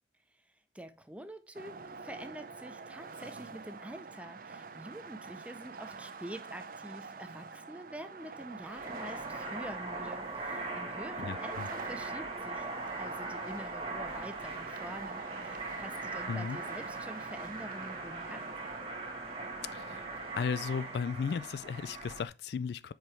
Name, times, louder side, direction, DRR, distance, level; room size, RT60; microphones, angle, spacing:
voice 1, 0.3-18.5, right 1 dB, 5° right, 0.5 m, -46 dB
sound 1, 1.5-20.5, right 4 dB, 50° right, 0.5 m, -47 dB
sound 2, 8.6-22.2, right 3 dB, 35° right, 1.2 m, -40 dB
voice 2, 11.2-11.7 16.3-16.6 19.7-20.1 20.4-22.9, left 6 dB, 65° left, 0.3 m, -35 dB
7.6 x 4.9 x 3.2 m
head